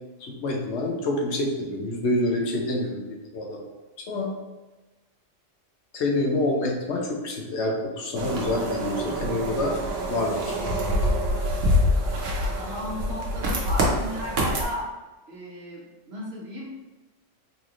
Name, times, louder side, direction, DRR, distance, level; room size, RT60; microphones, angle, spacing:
voice 1, 0.2-3.6 4.1-4.3 5.9-9.7 10.1-10.6, left 1 dB, 70° left, 0 dB, 0.9 m, -27 dB
sound 1, 8.1-14.6, equal, 90° right, 1.1 m, -26 dB
voice 2, 12.4-14.9 15.3-16.8, equal, 60° right, -4 dB, 1.2 m, -35 dB
3.9 x 3.0 x 2.4 m, 1.1 s
omnidirectional pair, 1.3 m